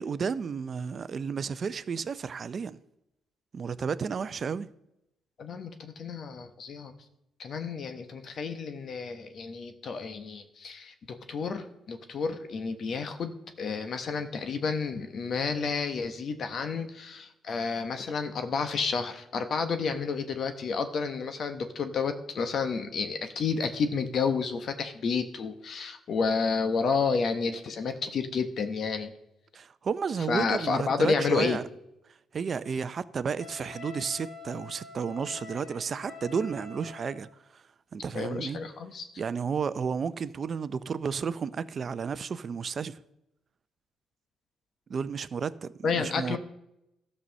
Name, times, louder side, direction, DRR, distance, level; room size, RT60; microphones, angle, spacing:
voice 1, 0.0-2.8 3.5-4.7 29.5-31.6 32.3-37.6 37.9-38.6 39.2-43.0 44.9-46.4, right 6 dB, 45° right, 0.5 m, -32 dB
voice 2, 5.4-6.9 7.4-29.1 30.3-31.6 38.1-39.1 45.8-46.4, left 5 dB, 55° left, 1.0 m, -30 dB
Wind instrument woodwind instrument, 33.4-37.3, left 4 dB, 85° left, 3.3 m, -46 dB
12.5 x 5.5 x 6.4 m
cardioid pair, 90°, 0 cm